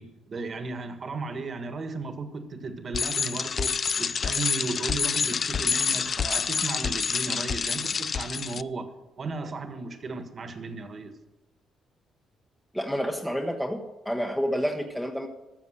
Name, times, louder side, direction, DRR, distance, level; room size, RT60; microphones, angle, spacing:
voice 1, 0.0-8.9 9.2-11.1, right 3 dB, 45° right, 8 dB, 1.6 m, -35 dB
Bicycle, 2.9-8.6, left 6 dB, 45° left, 0.3 m, -27 dB
voice 2, 12.7-15.3, equal, 5° left, 2 dB, 1.0 m, -29 dB
13.5 x 7.1 x 6.6 m, 1.0 s
cardioid pair, 90°, 0 cm